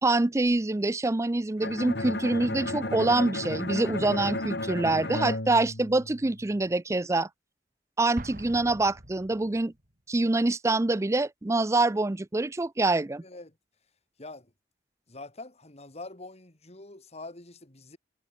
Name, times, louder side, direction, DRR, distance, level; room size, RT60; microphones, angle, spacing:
voice 1, 0.0-7.3 8.0-9.7 10.1-13.2, right 2 dB, 15° right, 0.4 m, -25 dB
Bowed string instrument, 1.6-6.5, left 2 dB, 70° left, 3.5 m, -33 dB
Explosion, 8.2-9.9, right 1 dB, 50° right, 5.8 m, -43 dB
voice 2, 13.2-13.5 14.2-14.5 15.1-18.0, left 2 dB, 35° left, 2.8 m, -44 dB
head